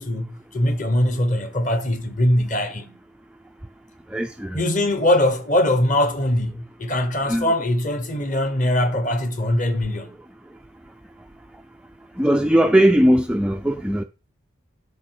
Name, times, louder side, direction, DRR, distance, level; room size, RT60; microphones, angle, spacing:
voice 1, 0.0-3.0 4.5-10.1, left 1 dB, 40° left, 1.2 m, -22 dB
voice 2, 4.1-4.6 7.3-7.5 12.2-14.0, right 1 dB, 5° right, 0.3 m, -19 dB
8.2 x 6.3 x 4.7 m
head